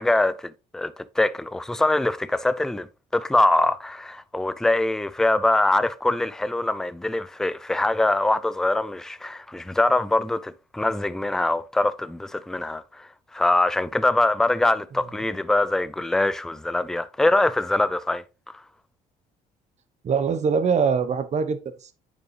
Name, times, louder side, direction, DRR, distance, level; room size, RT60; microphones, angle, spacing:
voice 1, 0.0-2.9 3.1-18.2, left 2 dB, 5° left, 0.4 m, -23 dB
voice 2, 20.0-21.9, right 6 dB, 45° right, 1.0 m, -23 dB
9.2 x 5.3 x 3.2 m
cardioid pair, 110°, 17 cm